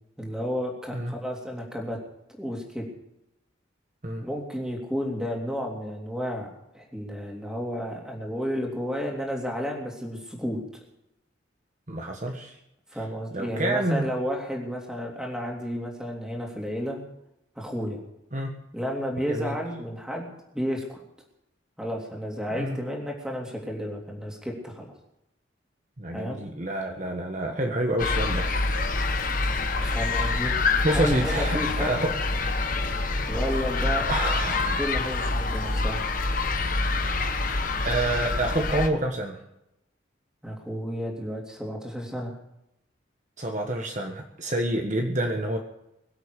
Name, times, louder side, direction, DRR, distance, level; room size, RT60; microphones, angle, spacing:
voice 1, 0.2-2.0 2.4-2.8 4.2-6.5 6.7-10.6 12.9-17.0 17.5-18.0 18.7-20.3 20.5-21.0 21.8-24.9 26.1-26.4 29.8-30.5 30.9-32.0 33.3-34.1 34.8-36.0 40.4-42.3, equal, 5° right, -1 dB, 3.3 m, -32 dB
voice 2, 11.9-12.6 13.3-14.1 18.3-18.5 19.3-19.5 22.6-22.8 26.0-28.5 29.8-30.5 30.8-32.1 34.1-34.8 37.8-39.4 43.4-45.6, right 1 dB, 40° right, 2 dB, 1.6 m, -28 dB
sound 1, 28.0-38.9, left 3 dB, 45° left, 1.3 m, -26 dB
23.0 x 8.1 x 6.7 m, 0.84 s
head